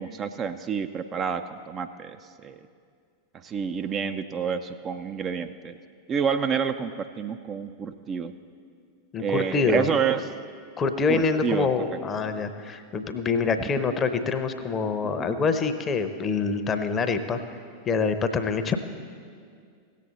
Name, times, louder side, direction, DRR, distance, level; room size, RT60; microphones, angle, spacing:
voice 1, 0.0-2.6 3.4-5.8 6.1-8.3 9.2-10.2 11.1-11.7 13.6-13.7, right 7 dB, 25° right, 8 dB, 0.4 m, -28 dB
voice 2, 9.1-9.9 10.8-17.4 17.9-18.8, left 4 dB, 25° left, 8 dB, 0.7 m, -25 dB
17.0 x 7.4 x 4.0 m, 2.2 s
figure-of-eight pair, 90°, 0 cm